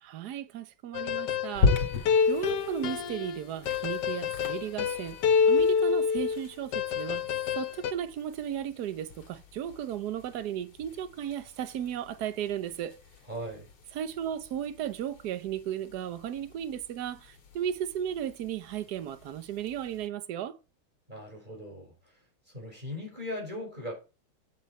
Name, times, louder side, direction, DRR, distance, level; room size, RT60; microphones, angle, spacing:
voice 1, 0.0-1.8 2.3-5.2 5.5-7.3 7.6-13.0 13.9-20.6, right 10 dB, 60° right, 1.2 m, -35 dB
sound 1, 0.9-6.4 6.7-7.9, left 6 dB, 65° left, 1.3 m, -27 dB
sound 2, 1.5-20.1, left 4 dB, 80° left, 2.7 m, -38 dB
voice 2, 13.3-13.7 21.1-21.9 22.5-23.9, left 1 dB, 20° right, 5.2 m, -38 dB
9.3 x 8.0 x 4.4 m
omnidirectional pair, 2.3 m